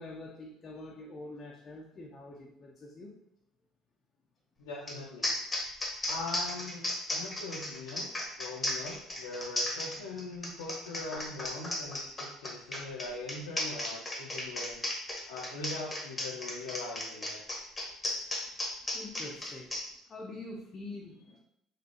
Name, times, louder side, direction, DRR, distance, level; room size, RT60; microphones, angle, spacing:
voice 1, 0.0-3.1 17.4-17.5 18.9-19.7 20.1-21.4, left 2 dB, 40° left, -1 dB, 0.6 m, -45 dB
voice 2, 4.6-5.3 6.1-6.8 7.1-8.1 8.4-14.8 15.3-17.4, left 3 dB, 85° left, -4 dB, 0.6 m, -41 dB
sound 1, 4.9-5.0 5.2-19.8, left 1 dB, 20° left, 1.0 m, -35 dB
4.2 x 2.7 x 2.9 m, 0.77 s
hypercardioid pair, 65°, 0 cm